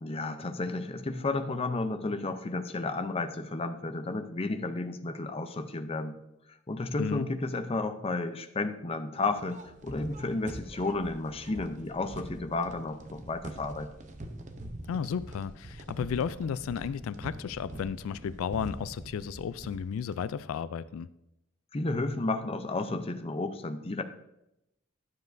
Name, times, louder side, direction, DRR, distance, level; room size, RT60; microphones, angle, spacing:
voice 1, 0.0-6.2 6.7-13.9 21.7-24.0, left 3 dB, 30° left, 8 dB, 0.5 m, -32 dB
voice 2, 7.0-7.3 14.9-21.1, left 7 dB, 80° left, 16 dB, 0.3 m, -33 dB
sound 1, 9.4-20.4, right 1 dB, 35° right, 0.7 m, -44 dB
11.5 x 7.3 x 2.6 m, 0.86 s
head